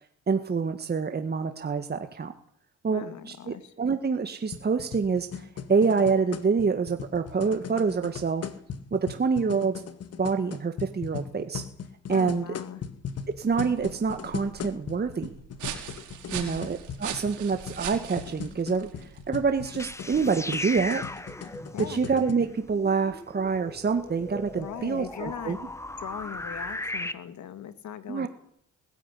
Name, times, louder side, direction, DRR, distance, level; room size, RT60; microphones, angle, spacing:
voice 1, 0.3-2.3 2.8-8.5 8.9-9.8 10.2-11.6 12.1-12.4 13.3-15.3 16.3-21.0 21.9-25.6 28.1-28.3, right 5 dB, 35° right, 7 dB, 1.8 m, -27 dB
voice 2, 2.9-3.7 12.1-12.8 16.3-16.7 21.7-22.0 24.6-25.7 26.0-28.3, left 9 dB, 70° left, 12 dB, 2.2 m, -39 dB
sound 1, 4.5-22.3, left 7 dB, 55° left, 2.1 m, -39 dB
sound 2, 13.2-20.6, right 9 dB, 80° right, 4.5 m, -41 dB
sound 3, 19.6-27.1, left 1 dB, 10° left, 1.6 m, -37 dB
20.5 x 14.0 x 10.0 m, 0.65 s
cardioid pair, 90°, 30 cm